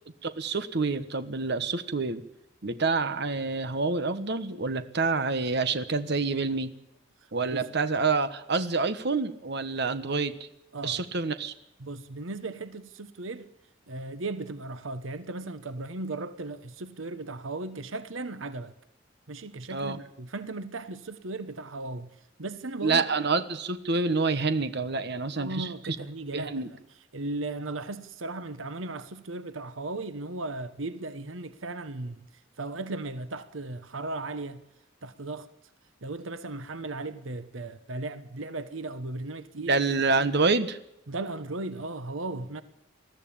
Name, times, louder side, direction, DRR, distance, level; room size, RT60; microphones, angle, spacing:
voice 1, 0.2-2.2 2.6-6.7 7.3-10.3 10.8-11.5 19.7-20.0 22.8-25.7 26.3-26.7 39.6-40.8, right 4 dB, 60° right, 1.3 m, -27 dB
voice 2, 10.7-11.1 11.8-13.5 13.9-18.7 19.3-22.1 22.4-23.0 25.3-26.8 27.1-32.3 32.6-34.6 35.0-35.5 36.0-39.7 41.1-42.6, right 2 dB, 90° right, 1.2 m, -36 dB
21.0 x 14.0 x 8.8 m
head